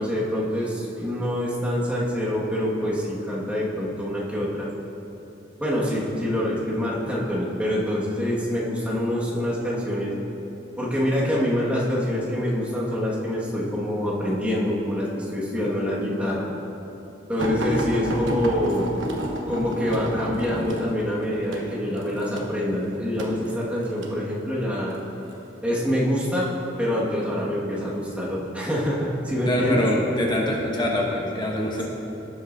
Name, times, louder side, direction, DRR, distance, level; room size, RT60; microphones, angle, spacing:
voice 1, 0.0-4.7 5.6-10.1 10.8-16.5 17.3-18.9 19.5-25.0 25.6-26.5 26.8-29.9, equal, 5° right, -6 dB, 1.7 m, -25 dB
sound 1, 17.4-24.2 24.9-25.4 26.3-27.0 27.7-27.9 28.3-28.4, right 1 dB, 85° right, 1.1 m, -31 dB
voice 2, 29.5-31.8, left 1 dB, 25° left, -2 dB, 1.0 m, -24 dB
17.5 x 7.9 x 2.7 m, 2.9 s
head